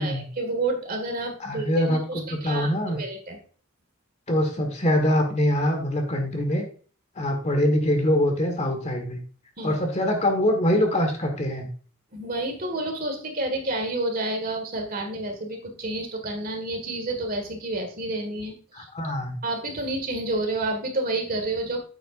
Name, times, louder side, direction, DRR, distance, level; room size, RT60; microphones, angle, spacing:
voice 1, 0.0-3.4 9.6-9.8 12.1-18.9 19.4-21.8, right 2 dB, 45° right, 4 dB, 1.9 m, -29 dB
voice 2, 1.4-2.0 2.3-3.0 4.3-6.7 7.1-9.2 9.6-11.7 18.7-19.4, left 1 dB, 30° left, 4 dB, 1.6 m, -23 dB
9.0 x 7.8 x 2.5 m, 0.41 s
head